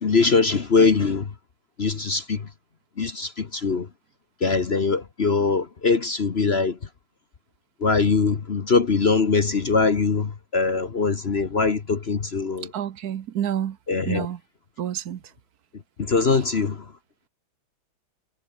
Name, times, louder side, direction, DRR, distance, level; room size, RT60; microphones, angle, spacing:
voice 1, 0.0-1.3 1.8-2.5 3.0-3.9 4.4-6.8 7.8-12.7 13.9-14.3 16.0-16.9, left 4 dB, 40° left, 1.1 m, -22 dB
voice 2, 12.7-13.8 14.1-14.4 14.8-15.2, right 10 dB, 55° right, 1.2 m, -28 dB
omnidirectional pair, 2.4 m